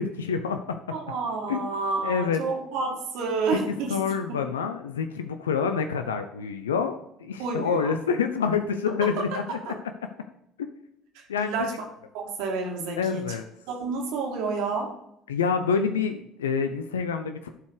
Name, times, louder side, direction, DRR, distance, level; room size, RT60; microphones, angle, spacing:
voice 1, 0.0-0.8 1.5-1.6 2.0-2.4 3.9-9.6 10.6-10.7 11.3-11.7 13.0-13.4 15.3-17.5, left 6 dB, 80° left, 8 dB, 0.6 m, -27 dB
voice 2, 0.9-4.0 4.3-4.4 7.4-7.9 11.1-11.7 12.1-13.2 13.7-14.9, right 4 dB, 65° right, 0 dB, 2.4 m, -29 dB
11.5 x 4.7 x 4.9 m, 0.80 s
figure-of-eight pair, 60°, 0 cm